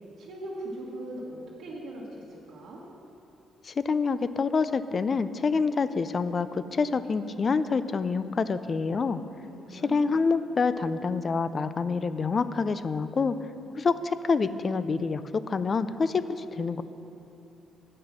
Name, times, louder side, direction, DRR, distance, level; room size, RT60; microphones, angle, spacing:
voice 1, 0.2-2.8 9.5-10.0, right 1 dB, 80° right, -7 dB, 1.5 m, -40 dB
voice 2, 3.6-9.2 9.7-13.4 13.8-16.8, left 4 dB, 40° left, 13 dB, 0.4 m, -27 dB
8.7 x 6.5 x 7.3 m, 2.9 s
cardioid pair, 90°, 0 cm